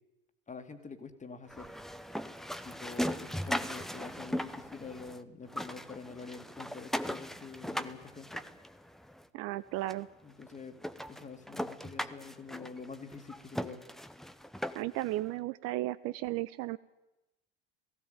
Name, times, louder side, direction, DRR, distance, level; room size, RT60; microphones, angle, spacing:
voice 1, 0.5-1.7 2.6-8.4 10.2-13.8, left 4 dB, 20° left, 7 dB, 2.3 m, -46 dB
sound 1, 1.5-5.2 5.5-9.2 9.9-10.0 10.4-10.5 10.8-15.1, equal, ahead, 0.8 m, -38 dB
voice 2, 9.3-10.1 14.7-16.8, right 17 dB, 50° right, 16 dB, 0.6 m, -34 dB
18.0 x 15.5 x 9.2 m, 1.0 s
figure-of-eight pair, 70°, 32 cm